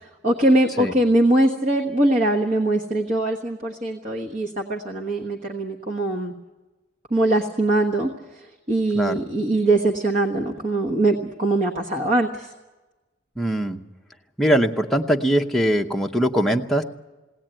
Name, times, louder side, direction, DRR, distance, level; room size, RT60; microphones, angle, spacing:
voice 1, 0.0-6.3 7.1-12.5, right 2 dB, 40° right, 0 dB, 1.3 m, -22 dB
voice 2, 13.4-13.8 14.4-16.8, right 1 dB, ahead, 1 dB, 0.8 m, -21 dB
21.5 x 17.5 x 9.0 m, 1.2 s
head